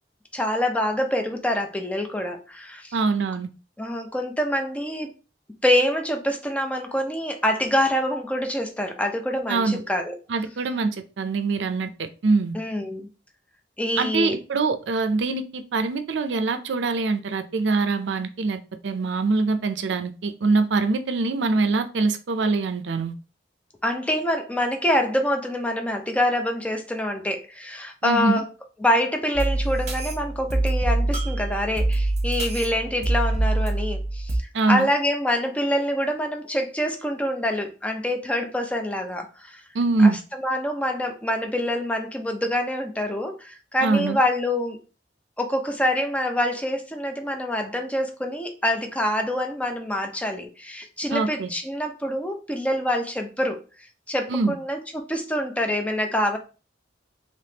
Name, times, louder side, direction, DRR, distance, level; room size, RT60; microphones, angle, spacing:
voice 1, 0.3-3.0 3.8-5.1 5.6-10.2 12.5-13.1 13.8-14.4 23.8-28.5 28.8-39.6 40.0-44.8 45.4-53.6 54.1-56.4, left 1 dB, 10° left, 3 dB, 0.5 m, -26 dB
voice 2, 2.9-3.5 9.5-9.8 10.3-12.5 14.0-23.1 28.0-28.4 34.5-34.9 39.7-40.2 43.8-44.2 51.1-51.5 54.3-54.5, right 3 dB, 75° right, 9 dB, 0.5 m, -23 dB
sound 1, 29.3-34.4, right 2 dB, 40° right, 1.0 m, -25 dB
3.4 x 3.0 x 2.8 m, 0.33 s
head